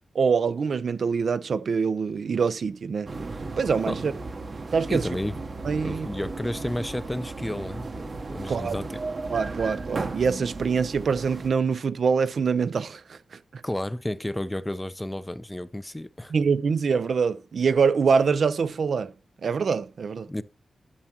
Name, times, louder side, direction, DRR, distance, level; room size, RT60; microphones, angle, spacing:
voice 1, 0.1-3.1 3.6-4.1 4.7-5.1 5.6-6.1 8.5-8.8 9.3-13.2 13.5-13.6 16.3-19.1 19.4-20.3, right 5 dB, 60° right, 0.6 m, -24 dB
sound 1, 3.1-11.5, right 3 dB, 40° right, 1.0 m, -35 dB
voice 2, 4.9-5.4 5.8-9.0 13.6-16.3 20.3-20.4, left 1 dB, 10° left, 0.5 m, -32 dB
12.5 x 7.2 x 2.9 m
wide cardioid pair, 155°, 0 cm